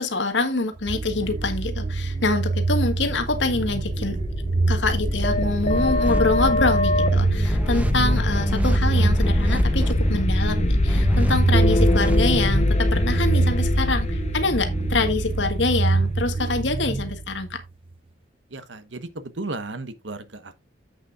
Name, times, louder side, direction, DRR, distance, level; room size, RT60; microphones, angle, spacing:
voice 1, 0.0-4.2 4.7-17.6, left 3 dB, 80° left, 1.6 m, -25 dB
sound 1, 0.8-17.7, right 3 dB, 30° right, 0.4 m, -26 dB
sound 2, 3.2-16.9, left 1 dB, 35° left, 1.0 m, -24 dB
sound 3, 5.7-7.1 7.4-10.2 10.8-12.5, equal, 10° right, 0.8 m, -28 dB
voice 2, 18.5-20.6, right 2 dB, 85° right, 1.2 m, -34 dB
10.5 x 8.4 x 2.5 m
head